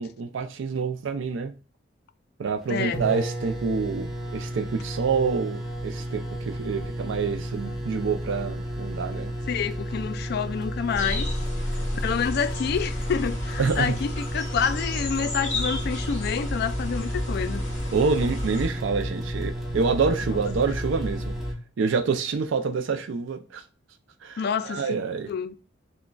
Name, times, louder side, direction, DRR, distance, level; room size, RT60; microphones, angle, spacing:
voice 1, 0.0-1.5 2.4-9.3 13.6-14.0 17.9-21.3 21.8-23.6 24.2-25.3, right 5 dB, 80° right, 0.4 m, -27 dB
sound 1, 2.6-2.7 2.9-21.5, equal, ahead, 0.7 m, -32 dB
voice 2, 2.7-3.1 9.5-11.3 12.0-17.6 20.3-20.4 24.4-25.0 25.3-25.6, left 6 dB, 55° left, 0.3 m, -28 dB
sound 2, 11.0-18.7, left 1 dB, 40° left, 1.3 m, -32 dB
6.1 x 2.2 x 2.2 m
head